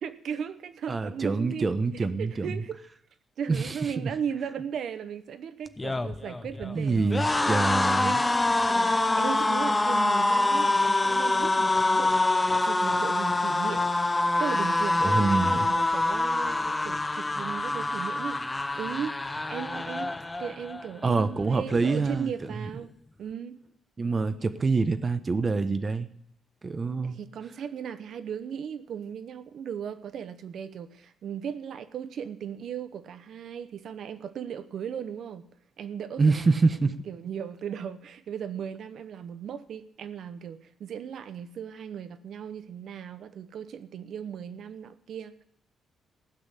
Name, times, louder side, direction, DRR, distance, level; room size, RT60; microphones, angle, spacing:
voice 1, 0.0-1.7 2.2-2.8 3.4-7.6 7.9-8.4 8.7-13.9 14.4-19.2 19.5-22.9 23.2-23.6 27.0-35.4 35.8-45.4, right 8 dB, 65° right, 12 dB, 1.0 m, -37 dB
voice 2, 0.9-2.6 3.5-4.1 6.7-8.2 15.0-15.7 21.0-22.3 24.0-26.1 26.6-27.2 36.2-36.9, right 4 dB, 30° right, 12 dB, 1.0 m, -26 dB
sound 1, 5.7-20.9 21.2-21.4 21.7-22.5, left 2 dB, 15° left, 0.9 m, -26 dB
15.5 x 6.3 x 9.8 m, 0.70 s
cardioid pair, 90°, 0 cm